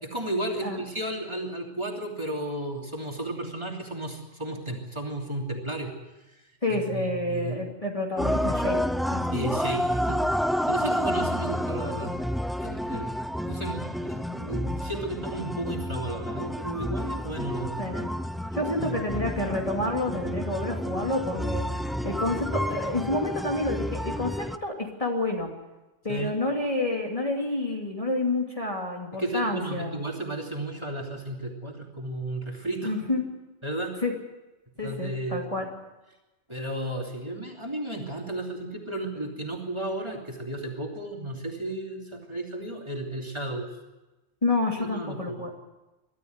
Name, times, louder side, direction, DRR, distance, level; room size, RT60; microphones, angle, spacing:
voice 1, 0.0-5.9 6.7-7.6 9.3-10.2 10.6-12.1 12.6-13.1 13.5-17.9 18.8-19.0 26.1-26.4 29.1-33.1 33.6-34.0 34.8-35.4 36.5-43.7 44.8-45.5, right 1 dB, 25° right, 0 dB, 3.1 m, -33 dB
voice 2, 6.6-8.8 9.1-9.2 17.8-18.1 18.5-21.7 22.0-25.5 26.0-30.0 32.8-33.2 34.0-34.1 34.8-35.7 44.4-45.5, left 2 dB, 30° left, 0 dB, 2.8 m, -29 dB
sound 1, 8.2-24.6, equal, ahead, 0.3 m, -30 dB
22.5 x 13.5 x 9.5 m, 1.1 s
omnidirectional pair, 1.2 m